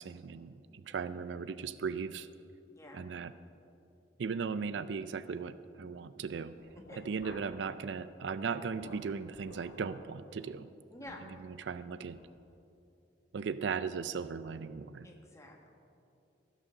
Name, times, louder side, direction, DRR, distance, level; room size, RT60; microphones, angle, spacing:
voice 1, 0.0-2.3 2.9-3.3 4.2-6.6 7.0-10.7 11.4-12.2 13.3-15.1, right 5 dB, 75° right, 14 dB, 0.4 m, -37 dB
voice 2, 2.7-3.0 6.7-7.0 10.9-11.2 15.0-15.7, left 2 dB, 15° left, 1 dB, 1.4 m, -50 dB
sound 1, 6.6-7.7 8.0-10.1 10.4-10.6 11.1-11.3 11.7-11.8 12.1-12.3, left 2 dB, 85° left, 1.4 m, -54 dB
15.5 x 6.4 x 6.4 m, 2.6 s
head